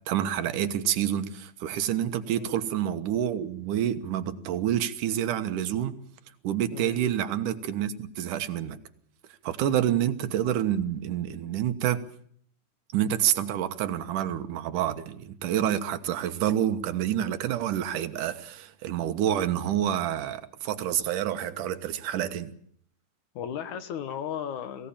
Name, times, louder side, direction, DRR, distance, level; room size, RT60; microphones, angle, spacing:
voice 1, 0.1-6.0 6.4-8.8 9.4-12.0 12.9-22.5, right 10 dB, 75° right, 2.8 m, -28 dB
voice 2, 2.3-2.6 6.7-7.0 9.7-10.0 23.4-24.9, left 8 dB, 70° left, 2.6 m, -36 dB
22.5 x 17.0 x 8.7 m
omnidirectional pair, 3.7 m